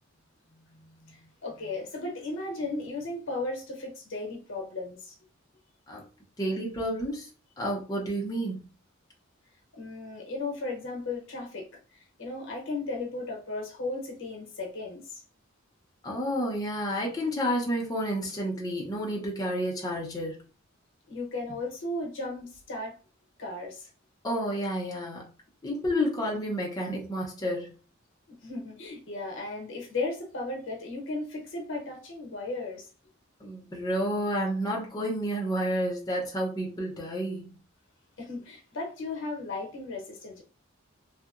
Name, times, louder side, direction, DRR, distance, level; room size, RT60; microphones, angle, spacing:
voice 1, 0.7-5.1 9.7-11.7 11.9-15.2 21.1-22.9 23.4-23.9 28.4-32.9 38.2-40.4, left 2 dB, 65° left, 0.8 m, -35 dB
voice 2, 6.4-7.3 7.6-8.6 16.0-20.4 24.2-25.3 25.6-27.7 33.4-37.5, equal, 20° left, 0.5 m, -30 dB
2.7 x 2.0 x 2.4 m
head